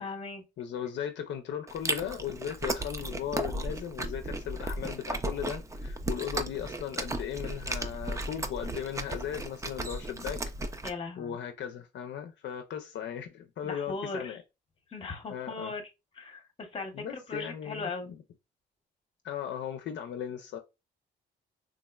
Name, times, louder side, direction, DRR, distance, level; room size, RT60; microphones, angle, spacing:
voice 1, 0.0-0.4 10.8-11.4 13.6-14.4 14.9-15.9 16.2-18.1, left 3 dB, 30° left, 0.8 m, -38 dB
voice 2, 0.6-10.4 11.2-14.4 15.3-15.7 16.9-18.1 19.2-20.6, left 9 dB, 65° left, 0.4 m, -37 dB
Chewing mastication, 1.7-10.9, right 2 dB, 15° right, 0.4 m, -35 dB
3.6 x 2.0 x 2.2 m
cardioid pair, 90°, 20 cm